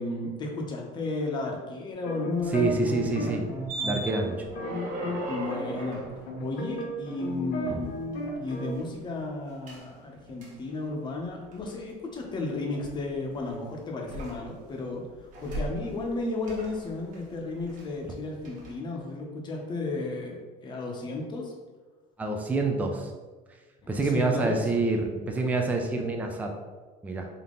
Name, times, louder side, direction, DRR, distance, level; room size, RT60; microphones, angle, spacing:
voice 1, 0.0-3.5 5.3-6.0 6.4-7.9 8.4-21.5 24.0-24.6, left 2 dB, 25° left, 0 dB, 0.7 m, -33 dB
sound 1, 1.9-5.2 5.5-8.8, left 1 dB, 60° left, 0.9 m, -35 dB
sound 2, 2.4-7.4 7.8-8.9 9.7-9.8 10.4-10.5 11.2-11.7 12.7-13.5 14.0-14.8 15.1-16.2 16.4-18.1 18.4-18.7, right 2 dB, 45° right, 1.0 m, -39 dB
voice 2, 2.5-3.4 3.8-4.5 7.7-7.8 22.2-23.1 23.9-26.5 27.0-27.3, right 3 dB, 10° right, 2 dB, 0.4 m, -27 dB
3.6 x 2.8 x 3.7 m, 1.3 s
cardioid pair, 145°, 18 cm